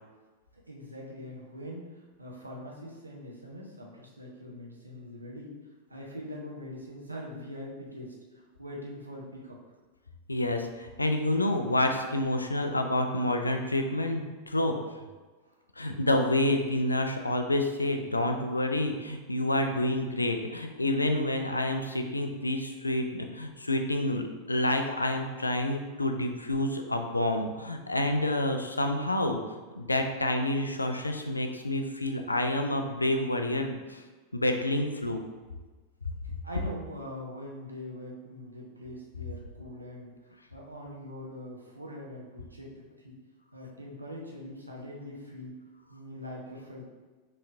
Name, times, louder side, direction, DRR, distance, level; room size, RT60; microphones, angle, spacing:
voice 1, 0.5-5.5 5.9-9.6 15.4-15.5 36.4-43.2 43.5-45.6 45.9-46.8, left 1 dB, 85° right, -2 dB, 0.9 m, -43 dB
voice 2, 10.3-14.7 15.8-29.4 29.7-34.0 34.3-35.2, left 1 dB, 80° left, 5 dB, 0.4 m, -28 dB
5.5 x 3.2 x 2.6 m, 1.3 s
figure-of-eight pair, 90°, 0 cm